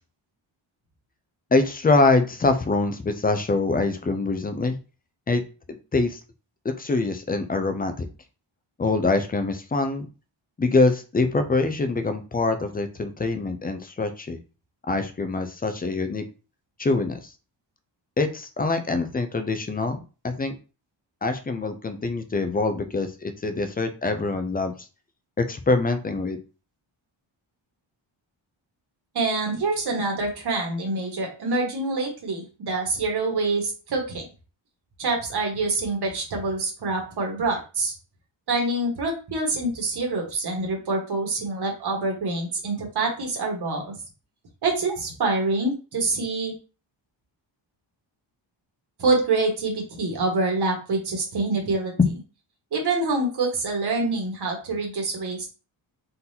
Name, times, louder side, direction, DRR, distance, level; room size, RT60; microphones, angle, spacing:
voice 1, 1.5-4.8 5.3-5.4 5.9-6.2 6.6-8.1 8.8-10.1 10.6-14.4 14.9-16.2 16.8-17.2 18.2-20.5 21.2-24.7 25.4-26.4, left 3 dB, 20° left, 8 dB, 0.4 m, -24 dB
voice 2, 29.1-34.3 35.0-37.9 38.5-44.0 44.6-46.5 49.0-51.9 52.7-55.5, right 3 dB, 55° right, 1 dB, 1.5 m, -26 dB
4.0 x 3.9 x 2.7 m, 0.33 s
wide cardioid pair, 175°, 46 cm